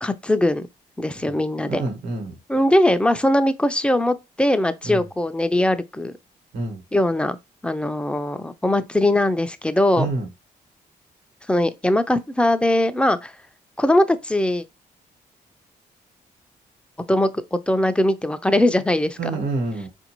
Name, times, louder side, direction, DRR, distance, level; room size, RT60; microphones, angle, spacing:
voice 1, 0.0-0.7 1.0-1.8 2.5-6.1 6.9-7.4 7.6-10.1 11.5-13.3 13.8-14.6 17.1-19.4, left 1 dB, 5° left, 0.5 m, -20 dB
voice 2, 1.7-2.4 4.8-5.0 6.5-6.8 9.9-10.3 19.2-19.9, right 2 dB, 85° right, 1.2 m, -27 dB
3.8 x 2.6 x 2.9 m
supercardioid pair, 50°, 18 cm